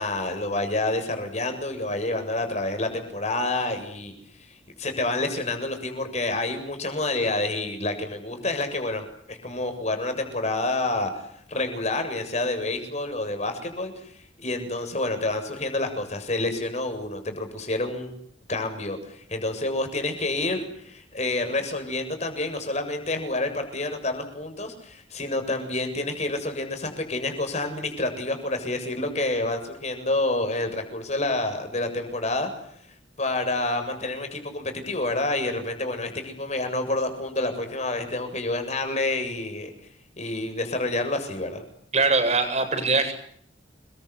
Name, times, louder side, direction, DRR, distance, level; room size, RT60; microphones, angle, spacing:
voice 1, 0.0-4.1 4.4-18.1 18.5-32.5 33.2-39.7 40.2-41.6, left 2 dB, 35° left, 7 dB, 7.5 m, -28 dB
voice 2, 41.9-43.1, right 3 dB, 35° right, 7 dB, 7.7 m, -22 dB
29.5 x 23.5 x 8.3 m, 0.68 s
head